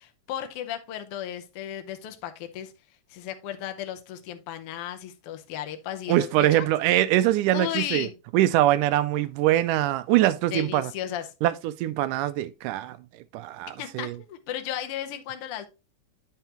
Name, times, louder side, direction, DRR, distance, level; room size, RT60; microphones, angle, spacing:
voice 1, 0.0-2.7 3.1-6.7 7.5-8.1 10.5-11.3 13.8-15.6, left 11 dB, 85° left, 1.2 m, -34 dB
voice 2, 6.1-8.1 8.3-10.9 11.4-13.0 13.3-14.2, right 14 dB, 80° right, 2.0 m, -23 dB
9.1 x 5.7 x 3.0 m
omnidirectional pair, 3.8 m